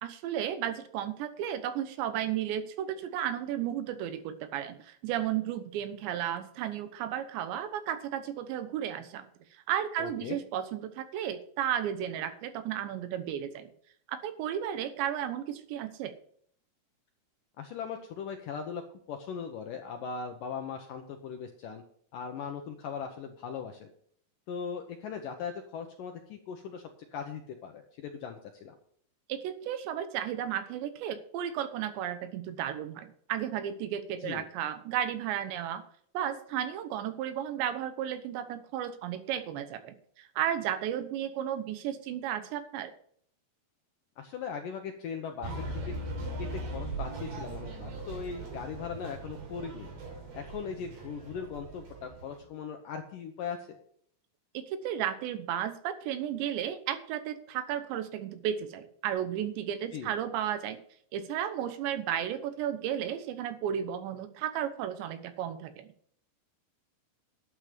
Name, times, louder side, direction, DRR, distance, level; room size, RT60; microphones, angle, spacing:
voice 1, 0.0-9.2 9.7-13.7 14.1-16.1 29.3-35.8 36.1-42.9 54.5-60.8 61.1-65.9, right 10 dB, 80° right, 10 dB, 3.3 m, -33 dB
voice 2, 10.0-10.4 17.6-18.8 19.1-21.8 22.1-23.9 24.5-28.7 34.2-34.5 44.2-45.9 46.4-49.9 50.3-53.7 59.9-60.1, left 6 dB, 75° left, 4 dB, 2.0 m, -39 dB
sound 1, 45.4-52.4, right 2 dB, 65° right, 5.3 m, -39 dB
11.5 x 9.3 x 5.1 m, 0.63 s
omnidirectional pair, 5.1 m